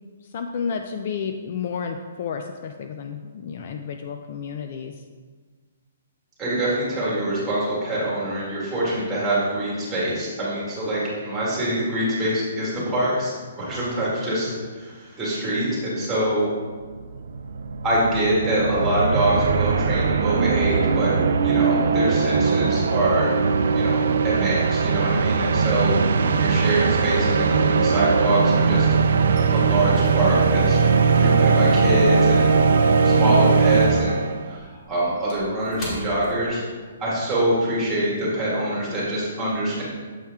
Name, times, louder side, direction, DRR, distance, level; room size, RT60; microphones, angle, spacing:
voice 1, 0.2-4.9, left 6 dB, 40° left, 5 dB, 0.3 m, -31 dB
voice 2, 6.4-13.3 13.6-16.5 17.8-21.1 21.4-23.3 23.7-28.9 29.5-30.8 31.1-32.5 33.0-34.2 34.5-36.6 37.0-39.8, right 1 dB, 5° right, -8 dB, 1.9 m, -24 dB
sound 1, 16.8-16.9 17.0-34.5, right 5 dB, 65° right, 0.3 m, -20 dB
sound 2, 29.2-33.6 33.8-37.1 37.5-37.6 38.1-38.4, left 1 dB, 20° left, 1.1 m, -42 dB
7.1 x 4.4 x 3.6 m, 1.5 s
hypercardioid pair, 170°, 0 cm